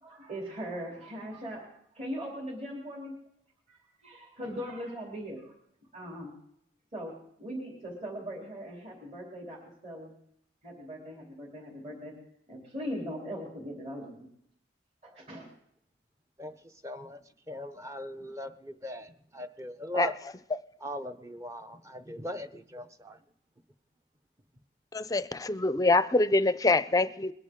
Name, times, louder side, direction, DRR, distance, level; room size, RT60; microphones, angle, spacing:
voice 1, 0.0-1.7 1.9-3.1 3.7-5.5 5.9-6.3 6.9-7.1 7.4-10.1 10.6-12.1 12.5-14.1 15.0-15.5, equal, 40° right, 3.3 m, -40 dB
voice 2, 16.8-17.2 17.5-20.1 20.8-23.2, equal, 15° right, 0.7 m, -39 dB
voice 3, 24.9-27.3, left 2 dB, 20° left, 0.5 m, -25 dB
22.0 x 11.0 x 3.7 m
head